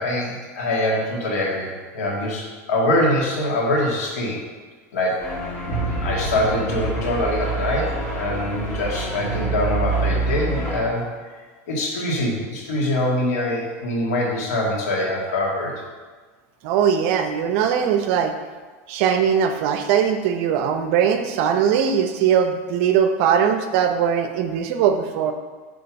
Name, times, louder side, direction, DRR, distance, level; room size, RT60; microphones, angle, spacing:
voice 1, 0.0-4.4 4.9-5.3 6.0-11.0 11.7-15.7, left 1 dB, 80° left, -3 dB, 2.0 m, -24 dB
sound 1, 5.2-10.8, right 3 dB, 15° left, 2.0 m, -26 dB
voice 2, 16.6-18.3 18.9-25.3, right 8 dB, 60° right, 7 dB, 0.7 m, -20 dB
6.5 x 3.5 x 5.8 m, 1.4 s
supercardioid pair, 135°, 8 cm